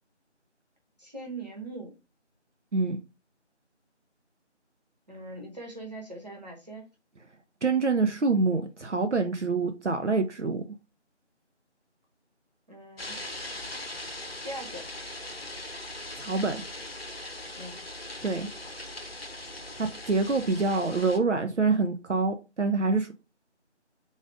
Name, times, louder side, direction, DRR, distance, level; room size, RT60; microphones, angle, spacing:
voice 1, 1.0-2.0 5.1-6.9 12.7-13.2 14.4-14.9 17.5-17.8, right 2 dB, 35° right, 1.1 m, -41 dB
voice 2, 7.6-10.6 16.2-16.6 18.2-18.5 19.8-23.1, right 3 dB, 75° right, 0.7 m, -26 dB
sound 1, 13.0-21.2, left 1 dB, 55° left, 0.7 m, -40 dB
4.0 x 2.5 x 4.6 m
figure-of-eight pair, 175°, 36 cm